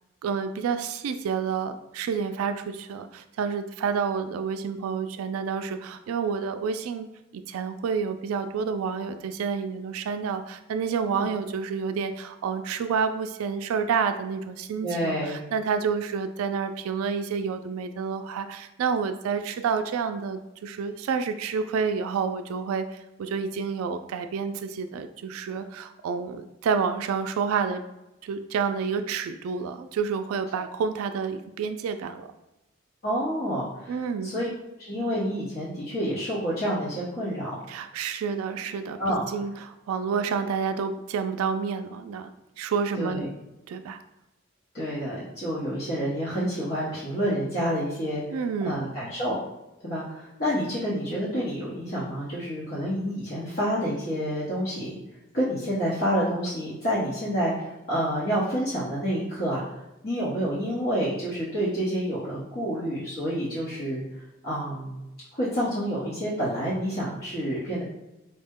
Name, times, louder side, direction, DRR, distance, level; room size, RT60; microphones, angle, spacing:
voice 1, 0.2-7.1 7.3-22.9 23.2-27.8 28.2-32.3 33.9-34.4 37.7-43.3 43.7-44.0 48.3-48.8, right 6 dB, 90° right, 9 dB, 0.3 m, -29 dB
voice 2, 14.8-15.4 33.0-34.5 34.8-37.5 39.0-39.3 42.9-43.3 44.7-49.4 49.8-54.9 55.3-59.6 60.0-64.0 64.4-65.0 65.3-67.8, equal, 45° left, -9 dB, 0.9 m, -28 dB
4.2 x 2.1 x 3.5 m, 0.96 s
head